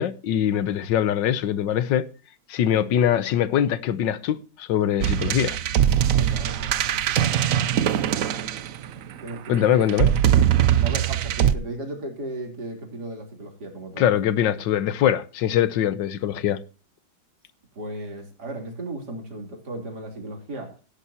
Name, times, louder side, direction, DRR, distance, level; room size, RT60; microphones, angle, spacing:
voice 1, 0.0-2.0 2.5-5.6 9.5-10.1 14.0-16.6, left 10 dB, 70° left, 1.4 m, -22 dB
voice 2, 2.7-3.1 6.1-7.2 9.2-10.2 10.8-14.1 17.7-20.7, right 2 dB, 50° right, 3.9 m, -36 dB
sound 1, 5.0-9.1 9.9-11.5, right 10 dB, 75° right, 0.7 m, -21 dB
17.0 x 11.0 x 2.8 m
omnidirectional pair, 2.2 m